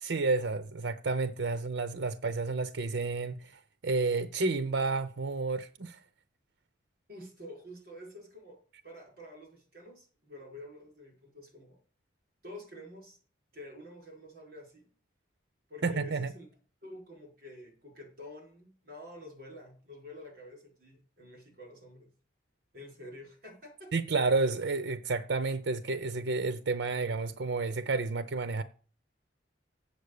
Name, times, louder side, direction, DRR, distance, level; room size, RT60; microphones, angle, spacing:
voice 1, 0.0-6.0 15.8-16.3 23.9-28.6, right 3 dB, 75° right, 0.6 m, -31 dB
voice 2, 7.1-8.6 8.8-11.8 12.4-13.2 13.5-14.8 15.7-16.5 16.8-22.1 22.7-23.9, left 1 dB, 50° right, 4.9 m, -48 dB
8.0 x 7.2 x 6.7 m
head